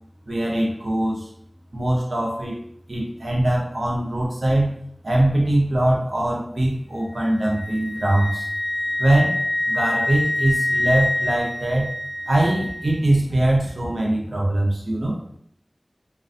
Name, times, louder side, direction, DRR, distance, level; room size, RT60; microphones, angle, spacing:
voice 1, 0.3-1.3 1.7-2.6 2.9-4.7 5.0-8.5 9.0-9.3 9.7-11.9 12.3-15.2, right 1 dB, 80° right, -3 dB, 0.7 m, -22 dB
Wind instrument woodwind instrument, 7.1-13.1, left 1 dB, 10° right, 1.4 m, -26 dB
2.4 x 2.2 x 2.5 m, 0.66 s
wide cardioid pair, 45°, 0 cm